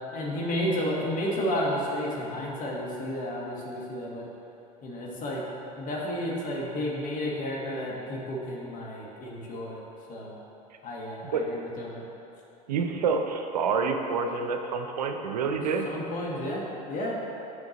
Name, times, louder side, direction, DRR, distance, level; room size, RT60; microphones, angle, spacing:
voice 1, 0.1-4.3 4.8-5.4 5.7-9.8 10.1-10.3 10.8-12.0 15.8-17.2, equal, 45° left, -3 dB, 1.3 m, -32 dB
voice 2, 12.7-15.9, right 5 dB, 85° right, 5 dB, 0.6 m, -28 dB
8.0 x 5.7 x 2.9 m, 2.9 s
hypercardioid pair, 85°, 20 cm